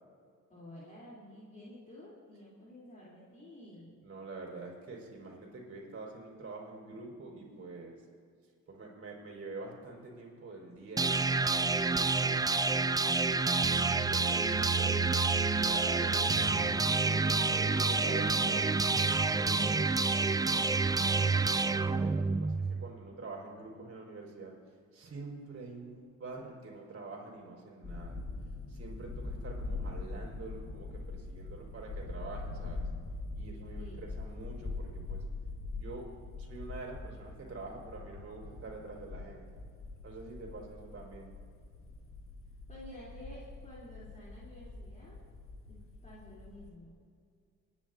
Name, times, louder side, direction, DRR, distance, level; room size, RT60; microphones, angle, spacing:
voice 1, 0.5-4.0 13.7-14.5 19.4-21.1 29.9-30.1 33.8-34.1 42.7-45.2 45.7-45.8 46.0-46.9, left 1 dB, 25° left, -7 dB, 3.3 m, -51 dB
voice 2, 4.0-8.0 8.7-13.0 13.7-16.8 17.2-18.8 21.5-24.5 24.9-28.2 28.7-32.9 33.4-35.2 35.7-36.1 36.4-39.5 40.0-41.3, right 3 dB, 50° right, -2 dB, 4.3 m, -46 dB
sound 1, 11.0-22.9, right 3 dB, 15° right, 0.3 m, -28 dB
sound 2, 27.8-46.7, left 3 dB, 45° left, 1.5 m, -43 dB
30.0 x 10.5 x 2.7 m, 2.2 s
cardioid pair, 90°, 30 cm